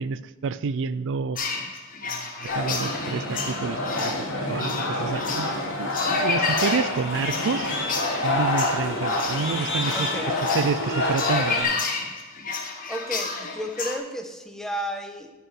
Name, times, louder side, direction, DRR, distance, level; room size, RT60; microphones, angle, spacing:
voice 1, 0.0-1.4 2.0-4.1 4.5-5.5 5.8-7.7 8.2-10.1 10.5-11.8, right 5 dB, 60° right, 15 dB, 0.4 m, -29 dB
sound 1, 1.4-14.0, left 4 dB, 40° left, 1.4 m, -31 dB
sound 2, 2.5-11.6, left 1 dB, 60° left, 4.0 m, -27 dB
voice 2, 9.9-10.4 12.9-15.3, equal, ahead, 4 dB, 1.0 m, -33 dB
11.0 x 5.5 x 7.6 m, 1.1 s
head